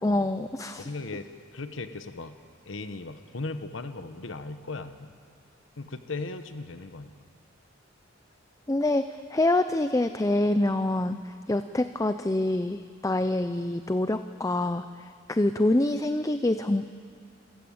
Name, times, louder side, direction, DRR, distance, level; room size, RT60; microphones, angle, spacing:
voice 1, 0.0-0.9 8.7-16.9, left 1 dB, 15° left, 10 dB, 0.5 m, -26 dB
voice 2, 0.8-2.4 2.7-5.1 5.8-7.1, left 3 dB, 85° left, 10 dB, 1.1 m, -37 dB
27.5 x 15.5 x 8.8 m, 2.1 s
head